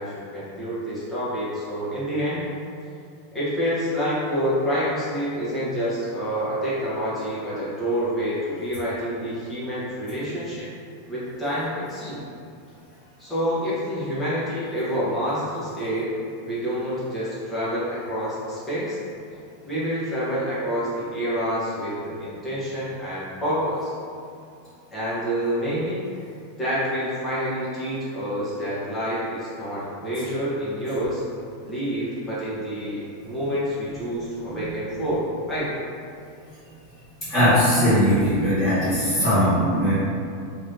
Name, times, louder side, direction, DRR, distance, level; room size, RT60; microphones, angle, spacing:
voice 1, 0.0-2.4 3.3-10.7 11.1-12.2 13.2-16.2 16.4-19.0 19.6-23.9 24.9-26.0 26.6-31.2 31.6-35.7, equal, 10° left, -10 dB, 1.0 m, -27 dB
voice 2, 37.2-39.9, equal, 25° left, -15 dB, 1.5 m, -19 dB
2.9 x 2.5 x 3.3 m, 2.5 s
supercardioid pair, 150°, 0 cm